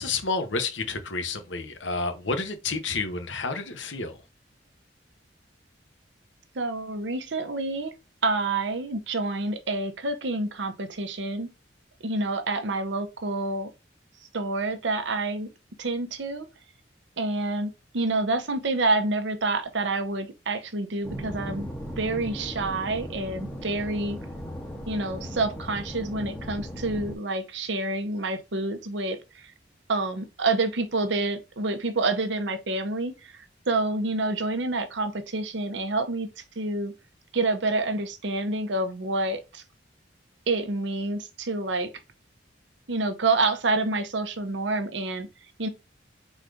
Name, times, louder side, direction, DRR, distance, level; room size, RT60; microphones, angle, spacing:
voice 1, 0.0-4.2, left 4 dB, 85° left, 1.0 m, -30 dB
voice 2, 6.6-7.9 8.2-11.5 12.0-13.7 14.3-15.5 15.8-16.4 17.2-21.7 22.0-24.2 24.9-29.2 29.9-33.1 33.7-36.3 36.6-36.9 37.3-39.6 40.5-41.9 42.9-45.3 45.6-45.7, right 2 dB, 75° right, 0.8 m, -28 dB
sound 1, 21.0-27.1, equal, 5° left, 0.9 m, -37 dB
4.8 x 4.0 x 2.6 m
head